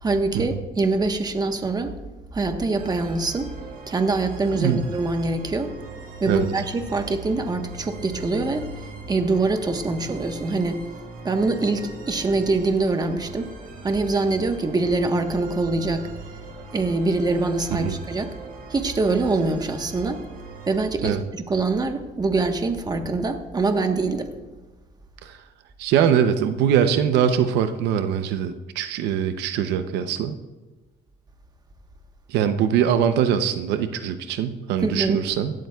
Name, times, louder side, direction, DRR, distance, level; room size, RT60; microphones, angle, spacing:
voice 1, 0.0-1.9 2.3-3.5 3.9-5.7 6.2-10.8 11.2-13.5 13.8-16.1 16.7-18.3 18.7-20.2 20.7-24.3 34.8-35.2, right 3 dB, 25° right, 6 dB, 1.3 m, -24 dB
sound 1, 2.7-20.8, right 3 dB, 55° right, 2.6 m, -41 dB
voice 2, 25.8-30.3 32.3-35.5, right 8 dB, 85° right, 9 dB, 0.8 m, -22 dB
17.0 x 12.5 x 2.4 m, 1.2 s
cardioid pair, 110°, 17 cm